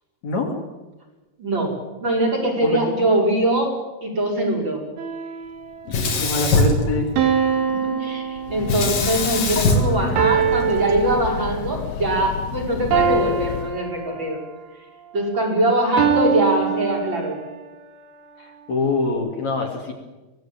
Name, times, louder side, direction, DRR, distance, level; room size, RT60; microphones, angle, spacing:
voice 1, 0.2-0.6 2.6-2.8 5.9-7.1 18.4-19.9, left 3 dB, 50° left, 1 dB, 3.8 m, -24 dB
voice 2, 1.4-1.7 2.0-3.7 4.0-4.8 7.5-14.4 15.1-17.4, right 1 dB, 30° right, -1 dB, 5.6 m, -22 dB
sound 1, 5.0-5.8 7.2-9.0 10.2-11.8 12.9-14.6 16.0-17.6, right 7 dB, 85° right, 4.1 m, -23 dB
Sink (filling or washing), 5.9-7.5 8.7-10.9, left 2 dB, 65° left, 4.6 m, -22 dB
Breathing / Train, 8.3-13.9, left 10 dB, 85° left, 2.9 m, -31 dB
24.5 x 18.0 x 8.9 m, 1.1 s
omnidirectional pair, 4.3 m